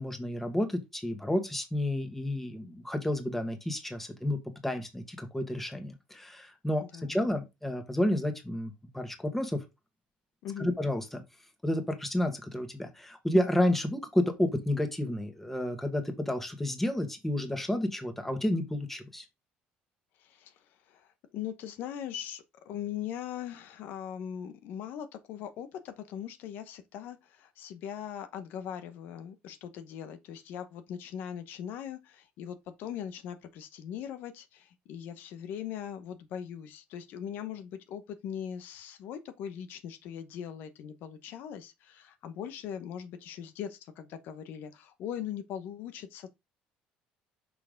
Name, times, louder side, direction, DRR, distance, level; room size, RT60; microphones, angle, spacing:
voice 1, 0.0-4.4 4.6-6.8 7.1-9.6 10.6-11.2 11.6-19.3, left 1 dB, 5° left, 1.8 m, -30 dB
voice 2, 6.8-7.2 10.4-10.7 20.2-46.3, left 9 dB, 70° left, 1.0 m, -40 dB
6.0 x 4.5 x 5.2 m
cardioid pair, 110°, 3 cm